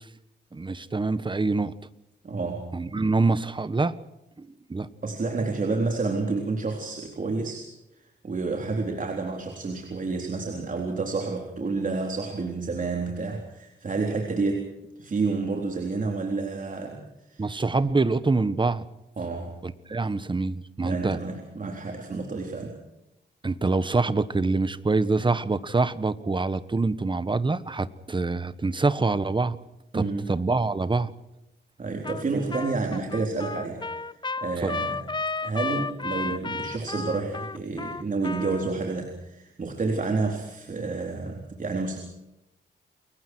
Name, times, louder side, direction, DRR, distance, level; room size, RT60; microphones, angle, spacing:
voice 1, 0.5-1.7 2.7-3.9 4.4-4.9 17.4-18.8 19.6-21.2 23.4-29.6 29.9-31.1 34.6-34.8, right 3 dB, 25° right, 14 dB, 1.4 m, -25 dB
voice 2, 2.2-2.8 5.0-7.7 8.2-17.6 19.2-19.6 20.8-22.8 29.9-30.3 31.8-34.1 34.4-35.1 35.4-42.0, right 3 dB, 45° right, 2 dB, 3.9 m, -29 dB
Trumpet, 32.0-32.2 32.5-38.7, left 3 dB, 25° left, 0.9 m, -33 dB
29.5 x 22.5 x 4.7 m, 0.89 s
cardioid pair, 100°, 19 cm